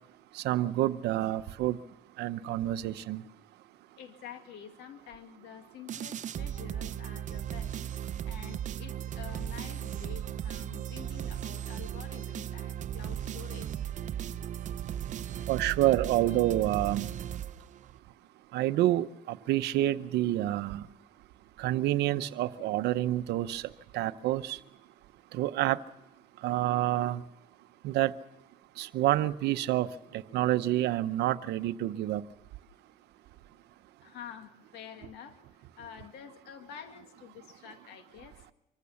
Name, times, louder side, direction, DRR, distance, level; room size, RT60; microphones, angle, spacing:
voice 1, 0.3-1.8 2.2-3.2 15.5-17.1 18.5-20.9 21.6-24.6 25.3-25.8 26.4-27.2 27.8-28.1 28.8-32.2, right 14 dB, 80° right, 12 dB, 0.9 m, -28 dB
voice 2, 4.0-7.7 8.3-13.7 34.0-35.4 35.8-38.5, left 9 dB, 90° left, 7 dB, 2.2 m, -48 dB
sound 1, 5.9-18.0, right 10 dB, 45° right, 0.6 m, -37 dB
25.0 x 15.0 x 7.1 m, 0.96 s
cardioid pair, 110°, 17 cm